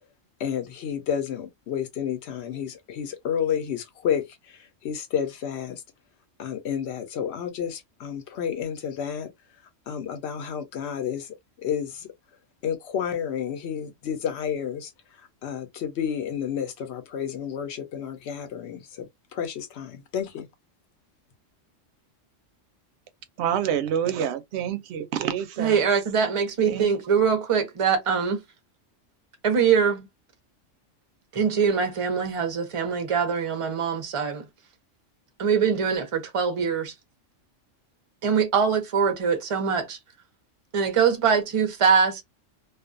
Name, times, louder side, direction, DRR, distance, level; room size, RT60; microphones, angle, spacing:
voice 1, 0.4-5.8 6.4-9.3 9.9-12.1 12.6-14.9 15.2-20.5, left 8 dB, 65° left, 0.9 m, -31 dB
voice 2, 23.4-25.8 26.7-26.9, right 9 dB, 65° right, 0.8 m, -27 dB
voice 3, 25.6-28.4 29.4-30.1 31.3-34.5 35.4-36.9 38.2-40.0 40.7-42.2, right 6 dB, 40° right, 0.5 m, -23 dB
2.4 x 2.2 x 2.4 m
omnidirectional pair, 1.3 m